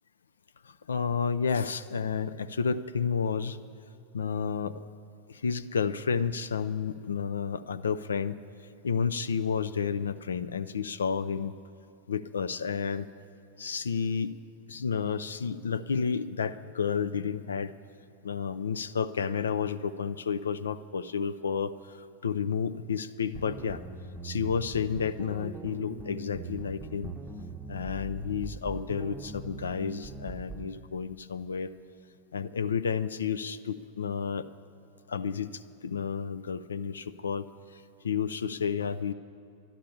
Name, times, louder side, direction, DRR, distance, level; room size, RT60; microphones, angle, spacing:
voice 1, 0.7-3.6 4.1-4.9 5.3-8.3 8.8-11.5 12.1-13.1 13.6-14.3 14.7-17.7 18.2-23.8 24.2-27.1 27.7-31.7 32.3-34.5 35.1-37.5 38.0-39.1, left 6 dB, 70° left, 13 dB, 0.4 m, -31 dB
sound 1, 23.3-30.7, right 3 dB, 10° right, 0.8 m, -42 dB
12.0 x 11.5 x 7.0 m, 2.7 s
figure-of-eight pair, 90°, 0 cm